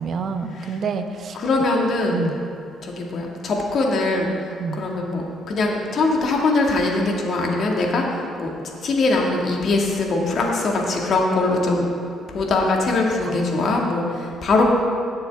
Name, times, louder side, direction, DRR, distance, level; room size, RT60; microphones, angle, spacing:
voice 1, 0.0-1.4 2.1-2.4 4.6-4.8 13.2-14.1, right 5 dB, 55° right, 7 dB, 0.8 m, -29 dB
voice 2, 1.4-2.2 2.8-4.3 4.7-8.1 8.4-8.5 8.8-11.8 12.3-14.6, left 3 dB, 55° left, 0 dB, 1.9 m, -21 dB
17.0 x 6.7 x 3.5 m, 2.5 s
cardioid pair, 85°, 0 cm